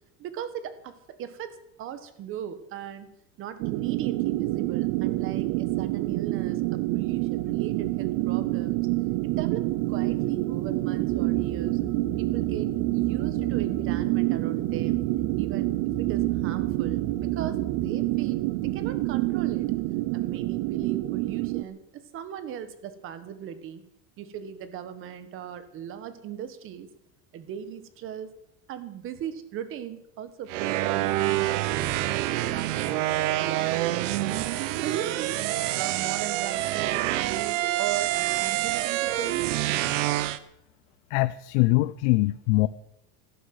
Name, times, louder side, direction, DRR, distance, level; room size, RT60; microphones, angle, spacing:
voice 1, 0.2-3.1 3.4-8.9 9.2-11.8 12.2-15.0 15.4-15.7 16.0-19.7 20.1-23.8 24.2-26.9 27.3-28.3 28.7-34.1 34.8-35.4 35.7-39.8, right 9 dB, 35° right, 12 dB, 1.6 m, -38 dB
sound 1, 3.6-21.6, right 19 dB, 55° right, 0.7 m, -27 dB
sound 2, 11.1-18.8, right 3 dB, ahead, 3.8 m, -41 dB
sound 3, 30.5-40.4, right 15 dB, 90° right, 1.1 m, -27 dB
voice 2, 41.1-42.7, left 20 dB, 70° left, 14 dB, 0.7 m, -23 dB
15.0 x 11.5 x 7.9 m, 0.79 s
cardioid pair, 170°, 36 cm